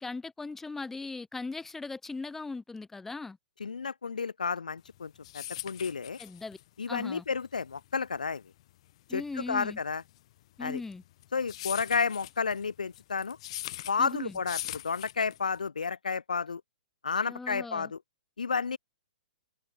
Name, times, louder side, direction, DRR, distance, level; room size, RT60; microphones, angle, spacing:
voice 1, 0.0-3.4 6.2-6.6 6.9-7.2 9.1-9.8 10.6-11.0 14.0-14.4 17.3-17.9, left 3 dB, 5° left, 1.2 m, -38 dB
voice 2, 3.6-6.2 6.8-8.4 9.1-10.0 10.6-10.8 11.3-13.4 13.9-16.6 17.0-18.0 18.4-18.8, left 5 dB, 70° left, 1.4 m, -31 dB
sound 1, 4.9-15.7, left 15 dB, 45° left, 1.3 m, -42 dB
figure-of-eight pair, 115°, 4 cm